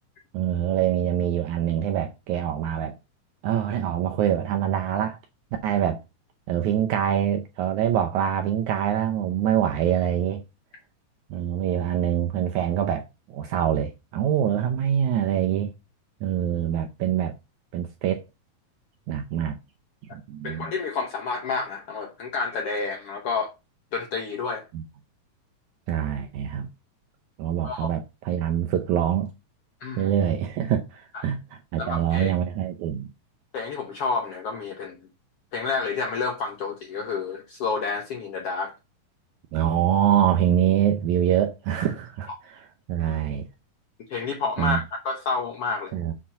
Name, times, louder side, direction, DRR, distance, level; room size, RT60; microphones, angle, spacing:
voice 1, 0.3-2.9 3.4-5.2 5.6-6.0 6.5-10.4 11.3-13.0 13.3-15.7 16.2-17.3 17.7-18.2 19.1-19.6 20.1-20.7 24.7-24.8 25.9-26.7 27.4-29.3 30.0-31.4 31.7-33.1 39.5-42.6 42.9-43.5 44.6-44.8 45.9-46.1, right 10 dB, 75° right, 1.8 m, -24 dB
voice 2, 20.4-23.5 23.9-24.7 27.6-27.9 29.8-30.1 31.1-31.2 31.8-32.3 33.5-35.0 35.5-38.7 44.1-45.9, left 4 dB, 80° left, 1.3 m, -29 dB
7.4 x 4.3 x 5.6 m
omnidirectional pair, 4.0 m